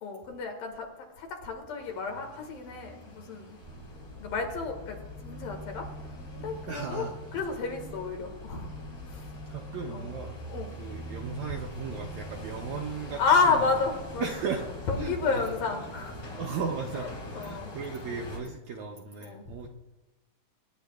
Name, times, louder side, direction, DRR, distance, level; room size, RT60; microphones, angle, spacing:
voice 1, 0.0-0.9 1.2-3.6 4.2-5.0 5.2-5.9 6.3-7.1 7.3-8.7 9.1-9.3 9.9-10.2 10.5-10.7 13.2-14.3 14.9-16.2 16.9-17.1 17.3-17.7 19.2-19.7, left 4 dB, 75° left, 3 dB, 3.4 m, -30 dB
sound 1, 1.8-18.4, equal, 50° left, 5.2 m, -45 dB
sound 2, 3.6-17.6, left 1 dB, 15° right, 1.4 m, -45 dB
voice 2, 6.7-7.1 9.5-10.4 10.8-13.7 14.2-14.6 15.0-15.4 16.4-19.7, right 5 dB, 75° right, 1 dB, 1.7 m, -36 dB
24.5 x 10.0 x 2.4 m, 1.1 s
omnidirectional pair, 4.1 m